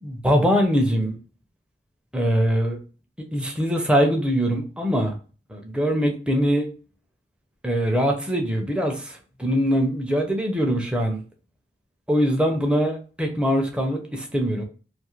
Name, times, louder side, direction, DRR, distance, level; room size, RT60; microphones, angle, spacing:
voice 1, 0.0-1.2 2.1-2.8 3.3-5.1 5.5-6.7 7.6-11.2 12.1-14.6, equal, 5° right, 2 dB, 0.5 m, -22 dB
2.6 x 2.4 x 3.0 m, 0.36 s
head